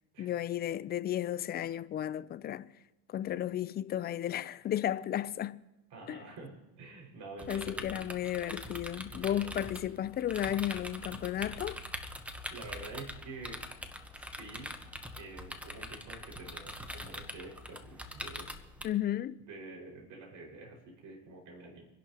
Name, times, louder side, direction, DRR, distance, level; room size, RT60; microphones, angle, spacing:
voice 1, 0.2-2.7 3.1-5.6 6.1-6.2 7.5-11.8 18.8-19.4, left 11 dB, 25° left, 0.4 m, -34 dB
voice 2, 5.9-8.2 9.1-9.6 12.5-13.6 14.1-14.7 15.2-18.5 19.4-21.8, right 3 dB, 55° right, 5.3 m, -48 dB
sound 1, 7.4-18.8, equal, 5° right, 1.0 m, -43 dB
26.5 x 11.0 x 2.9 m
supercardioid pair, 115°, 37 cm